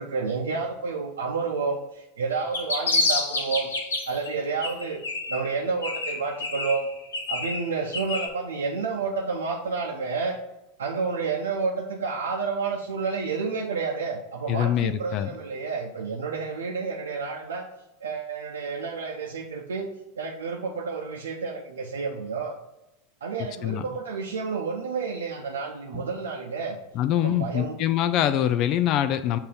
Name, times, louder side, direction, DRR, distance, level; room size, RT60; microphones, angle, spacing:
voice 1, 0.0-3.7 4.1-5.0 5.3-6.9 7.3-10.4 10.8-17.7 18.0-22.5 23.2-26.8 27.2-27.8, right 4 dB, 80° right, -1 dB, 0.6 m, -30 dB
sound 1, 2.3-4.3 4.6-5.5 5.8-8.3, left 2 dB, 80° left, 1.0 m, -28 dB
voice 2, 14.5-15.3 23.6-23.8 26.9-29.4, left 11 dB, 45° left, 11 dB, 0.4 m, -24 dB
6.8 x 2.7 x 5.2 m, 0.91 s
hypercardioid pair, 85°, 0 cm